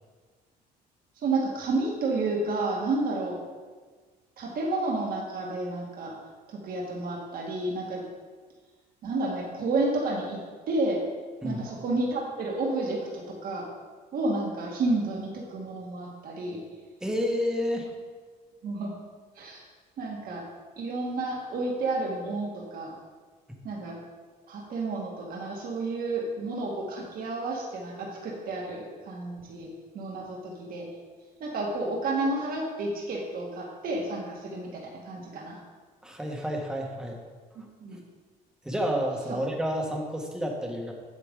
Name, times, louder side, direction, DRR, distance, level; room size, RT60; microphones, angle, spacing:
voice 1, 1.2-3.4 4.4-6.2 6.5-8.0 9.0-11.0 11.4-13.7 14.1-16.6 18.6-19.0 19.4-19.6 20.0-20.5 20.8-22.9 23.6-24.0 24.5-29.7 29.9-30.9 31.4-35.6 37.6-38.0 39.3-39.4, right 2 dB, 60° right, -2 dB, 1.8 m, -31 dB
voice 2, 17.0-17.9 36.0-37.2 38.6-40.9, equal, 5° right, 0 dB, 1.4 m, -30 dB
8.1 x 7.6 x 3.7 m, 1.4 s
cardioid pair, 110°, 17 cm